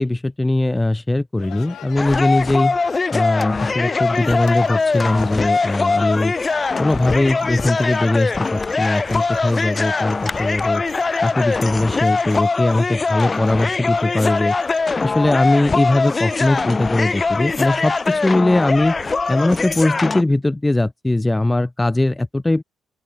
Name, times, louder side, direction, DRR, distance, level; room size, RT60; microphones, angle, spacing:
voice 1, 0.0-2.8 3.1-6.3 6.8-10.8 11.2-14.6 15.0-19.0 19.3-22.6, left 2 dB, 15° left, 1.4 m, -20 dB
sound 1, 1.4-8.1, left 10 dB, 70° left, 1.2 m, -38 dB
sound 2, 2.0-20.2, left 4 dB, 30° left, 0.8 m, -22 dB
sound 3, 4.0-20.3, right 14 dB, 85° right, 7.9 m, -48 dB
open air
cardioid pair, 90°, 0 cm